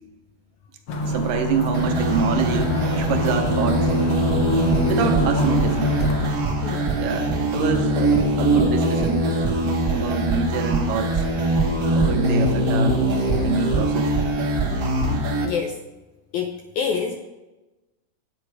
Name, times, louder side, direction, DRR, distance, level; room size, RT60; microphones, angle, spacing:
sound 1, 0.9-6.3, equal, 60° left, 1.3 m, -26 dB
voice 1, 1.0-3.9 4.9-5.9 7.0-9.2 9.9-11.3 11.9-13.1 13.4-14.2, right 6 dB, 75° right, 5 dB, 2.5 m, -26 dB
sound 2, 1.7-15.5, right 1 dB, 50° right, 1.2 m, -22 dB
voice 2, 15.4-15.8 16.3-17.2, left 6 dB, 85° left, 4 dB, 1.7 m, -26 dB
9.7 x 8.9 x 4.8 m, 1.1 s
omnidirectional pair, 4.1 m